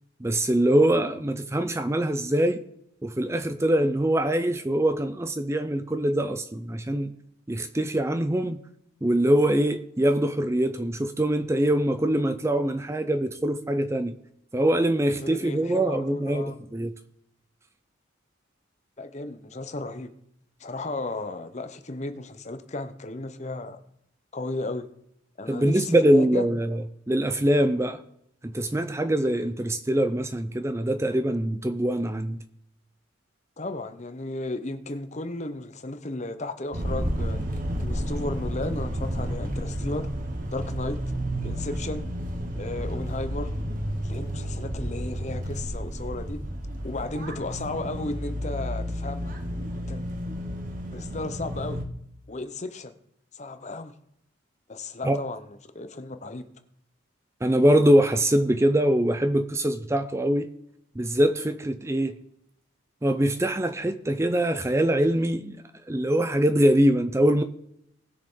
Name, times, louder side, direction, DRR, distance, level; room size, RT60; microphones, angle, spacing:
voice 1, 0.2-2.6 3.0-7.1 7.5-8.6 9.0-14.1 14.5-16.9 25.5-28.0 28.4-32.4 55.0-55.2 57.4-60.5 61.0-62.1 63.0-67.4, right 1 dB, 15° right, 0.5 m, -23 dB
voice 2, 15.1-16.6 19.0-20.1 20.6-23.8 24.3-24.8 25.4-26.4 33.6-37.4 37.8-40.1 40.5-41.0 41.4-42.0 42.6-43.5 44.0-46.4 46.8-49.3 49.7-50.0 50.9-51.8 52.3-52.9 53.3-53.9 54.7-55.4 55.7-56.4, left 2 dB, 35° left, 0.8 m, -34 dB
sound 1, 36.7-51.9, equal, 40° right, 1.4 m, -31 dB
19.5 x 6.6 x 3.8 m
head